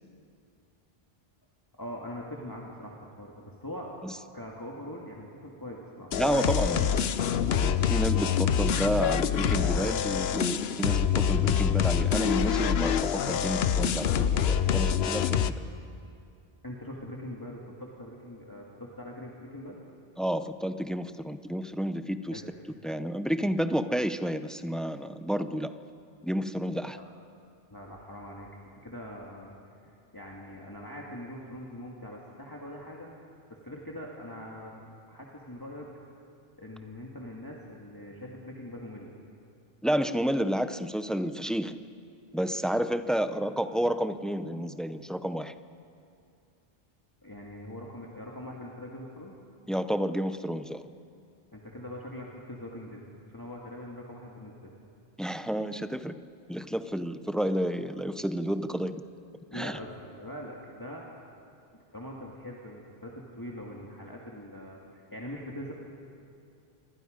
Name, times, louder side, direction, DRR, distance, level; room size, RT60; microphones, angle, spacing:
voice 1, 1.7-3.3 3.6-3.9 4.3-6.1 16.6-19.8 22.3-22.4 27.0-27.1 27.7-28.5 28.8-29.5 30.1-33.1 33.5-35.9 36.6-39.1 47.2-49.4 51.5-53.0 53.3-54.7 59.5-61.1 61.7-65.7, left 1 dB, 20° left, -3 dB, 2.0 m, -42 dB
sound 1, 6.1-15.5, left 8 dB, 85° left, 1.0 m, -26 dB
voice 2, 6.1-7.1 7.6-15.4 20.2-22.4 22.8-25.7 26.2-27.0 39.8-41.8 42.3-45.5 49.7-50.8 55.2-56.2 56.5-59.0 59.5-59.8, equal, ahead, 11 dB, 0.5 m, -30 dB
26.5 x 24.0 x 5.2 m, 2.5 s
omnidirectional pair, 1.0 m